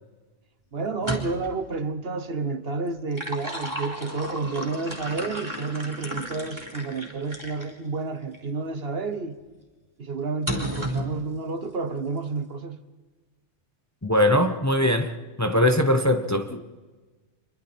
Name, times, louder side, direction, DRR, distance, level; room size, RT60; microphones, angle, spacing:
voice 1, 0.7-9.4 10.0-12.8, right 4 dB, 55° right, 1.4 m, -30 dB
sound 1, 0.9-1.6 2.9-7.7 8.3-8.5 10.5-11.1, right 1 dB, 15° right, 3.7 m, -33 dB
voice 2, 14.0-16.6, left 1 dB, 15° left, 0.9 m, -21 dB
26.5 x 23.0 x 4.5 m
omnidirectional pair, 1.3 m